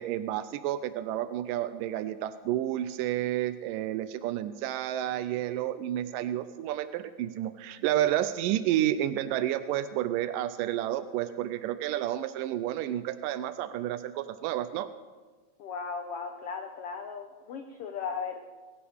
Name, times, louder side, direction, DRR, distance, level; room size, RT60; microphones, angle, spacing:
voice 1, 0.0-14.9, right 12 dB, 90° right, 11 dB, 2.3 m, -30 dB
voice 2, 15.6-18.5, left 5 dB, 70° left, 5 dB, 1.4 m, -37 dB
21.0 x 16.0 x 3.5 m, 1.4 s
omnidirectional pair, 3.8 m